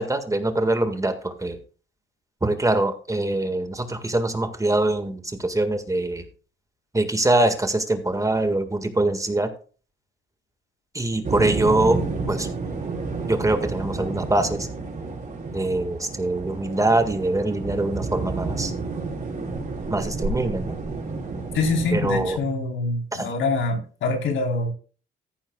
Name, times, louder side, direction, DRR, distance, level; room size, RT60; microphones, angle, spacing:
voice 1, 0.0-1.6 2.4-6.2 6.9-9.5 10.9-12.0 12.3-12.5 13.3-14.7 15.5-18.7 19.9-20.8 21.9-22.4 23.1-23.3, right 2 dB, 15° right, 7 dB, 1.8 m, -23 dB
sound 1, 11.2-22.4, right 3 dB, 40° right, 5.2 m, -30 dB
voice 2, 21.5-24.7, left 3 dB, 75° left, 3 dB, 3.8 m, -25 dB
14.5 x 11.5 x 2.3 m, 0.38 s
cardioid pair, 90°, 20 cm